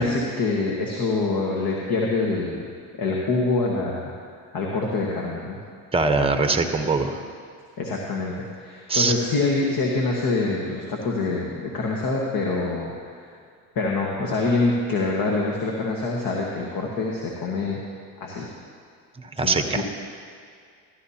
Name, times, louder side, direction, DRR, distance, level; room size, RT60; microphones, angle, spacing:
voice 1, 0.0-2.7 3.0-4.1 4.5-5.6 7.8-13.2 13.7-17.8 18.2-18.5 19.4-19.8, left 3 dB, 50° left, -2 dB, 1.5 m, -25 dB
voice 2, 5.9-7.2 8.9-9.1 19.2-19.8, right 3 dB, 15° right, 6 dB, 0.9 m, -22 dB
14.0 x 12.0 x 2.8 m, 2.2 s
supercardioid pair, 80°, 43 cm